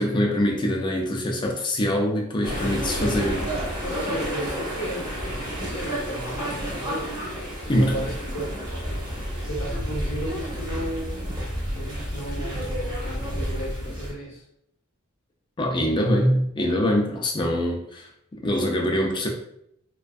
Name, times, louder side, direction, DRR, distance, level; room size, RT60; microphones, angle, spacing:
voice 1, 0.0-3.6 7.7-8.0 15.6-18.1 18.4-19.3, equal, 20° left, 1 dB, 0.3 m, -23 dB
sound 1, 2.4-14.1, equal, 20° right, 0.7 m, -30 dB
voice 2, 3.8-7.1 7.6-8.5 9.4-14.4, equal, 60° left, -3 dB, 0.7 m, -35 dB
2.5 x 2.2 x 2.2 m, 0.74 s
head